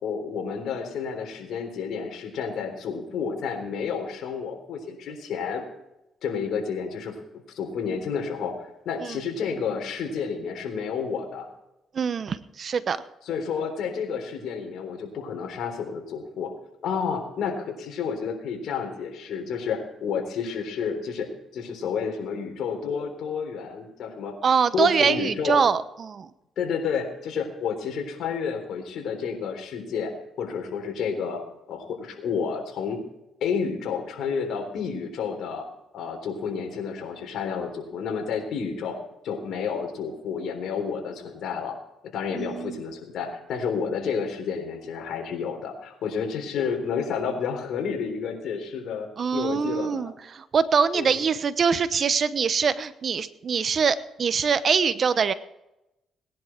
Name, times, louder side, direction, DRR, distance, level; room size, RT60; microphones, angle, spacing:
voice 1, 0.0-5.6 6.2-7.1 7.5-11.5 13.3-16.5 16.8-21.3 21.5-24.3 24.7-25.6 26.6-30.1 30.4-31.4 31.7-33.0 33.4-35.7 35.9-39.0 39.2-41.8 42.1-50.0 50.9-51.2, left 6 dB, 75° left, 3 dB, 3.7 m, -30 dB
voice 2, 11.9-13.0 24.4-26.3 42.3-42.8 49.2-55.3, right 6 dB, 50° right, 14 dB, 1.0 m, -24 dB
19.0 x 10.5 x 4.6 m, 0.89 s
cardioid pair, 90°, 0 cm